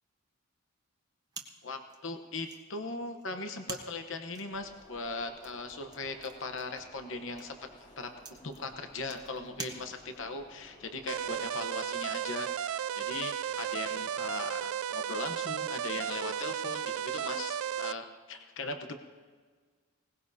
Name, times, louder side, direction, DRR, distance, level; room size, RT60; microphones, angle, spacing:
sound 1, 1.3-10.4, right 4 dB, 20° right, 1.0 m, -49 dB
voice 1, 1.6-7.6 8.0-18.9, left 3 dB, 65° left, 6 dB, 0.9 m, -39 dB
sound 2, 4.5-11.5, left 1 dB, 35° left, 2.0 m, -56 dB
sound 3, 11.1-17.9, right 9 dB, 85° right, 0.4 m, -34 dB
20.5 x 19.0 x 2.7 m, 1.5 s
head